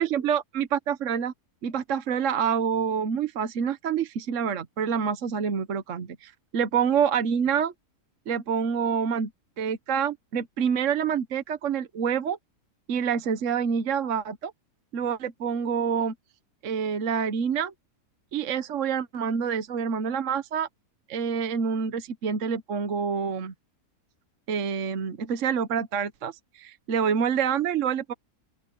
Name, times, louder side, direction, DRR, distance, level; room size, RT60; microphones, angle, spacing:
voice 1, 0.0-1.3 1.6-7.7 8.3-9.3 9.6-12.4 12.9-14.5 14.9-16.1 16.6-17.7 18.3-20.7 21.1-23.5 24.5-28.1, right 7 dB, 60° right, 1.3 m, -27 dB
open air
omnidirectional pair, 1.6 m